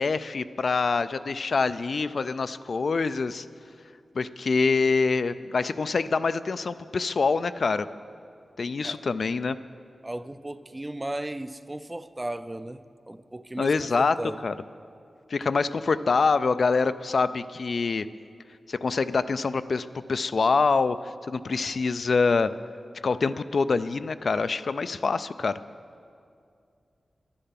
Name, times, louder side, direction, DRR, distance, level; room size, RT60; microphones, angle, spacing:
voice 1, 0.0-3.5 4.2-7.9 8.6-9.6 13.6-14.2 14.4-14.5 15.3-18.1 18.7-22.5 23.0-25.5, left 4 dB, 65° left, 0.3 m, -25 dB
voice 2, 10.0-14.4, right 1 dB, 20° right, 0.4 m, -36 dB
11.0 x 10.0 x 5.8 m
wide cardioid pair, 95°, 0 cm